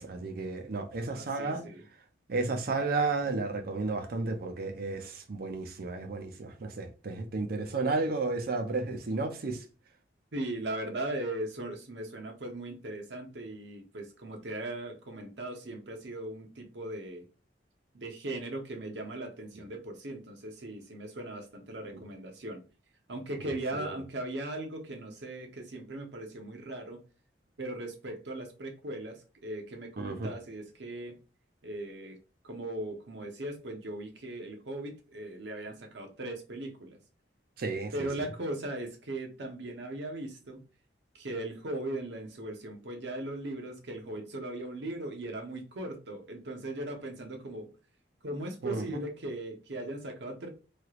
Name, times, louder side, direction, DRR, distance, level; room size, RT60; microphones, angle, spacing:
voice 1, 0.0-1.6 2.3-9.6 23.7-23.9 30.0-30.3 37.6-38.3 48.6-49.0, right 3 dB, 55° right, 0.5 m, -33 dB
voice 2, 0.9-1.8 10.3-17.3 17.9-22.6 23.1-27.0 27.6-31.2 31.6-32.2 32.4-37.0 37.9-40.6 41.1-47.7 48.2-50.5, right 1 dB, 75° right, 0.8 m, -38 dB
3.2 x 2.4 x 2.9 m
head